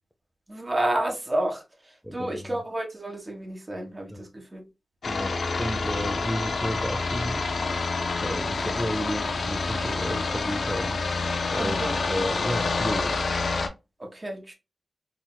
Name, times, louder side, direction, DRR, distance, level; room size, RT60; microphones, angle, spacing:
voice 1, 0.5-4.6 5.9-6.2 11.5-12.0 14.0-14.5, right 1 dB, 30° right, 1.6 m, -31 dB
voice 2, 2.0-2.4 4.1-4.2 5.1-7.5 8.2-11.0 11.5-13.2, equal, ahead, 0.6 m, -32 dB
sound 1, 5.0-13.7, left 3 dB, 75° left, 0.6 m, -28 dB
3.7 x 2.9 x 2.2 m
cardioid pair, 40°, 0 cm